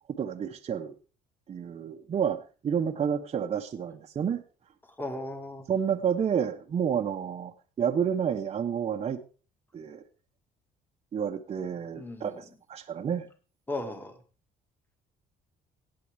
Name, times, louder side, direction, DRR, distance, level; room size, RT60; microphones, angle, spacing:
voice 1, 0.2-0.9 1.5-4.4 5.7-9.2 9.7-10.0 11.1-13.3, right 8 dB, 40° right, 4 dB, 0.8 m, -30 dB
voice 2, 5.0-5.7 11.9-12.4 13.7-14.2, left 2 dB, 10° left, 6 dB, 1.7 m, -36 dB
17.0 x 8.5 x 3.4 m, 0.36 s
cardioid pair, 110°, 17 cm